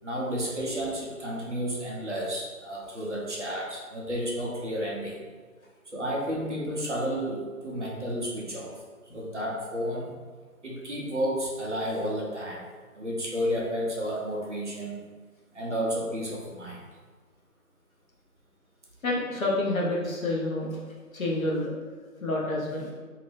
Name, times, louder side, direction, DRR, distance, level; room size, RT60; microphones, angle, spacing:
voice 1, 0.0-5.2 5.9-8.7 9.1-10.1 10.6-12.7 12.9-15.0 15.5-16.8, equal, 50° right, -3 dB, 0.7 m, -31 dB
voice 2, 19.0-20.8 21.1-21.7 22.2-22.9, left 2 dB, 65° left, -3 dB, 1.0 m, -28 dB
2.8 x 2.6 x 3.3 m, 1.5 s
figure-of-eight pair, 170°, 45 cm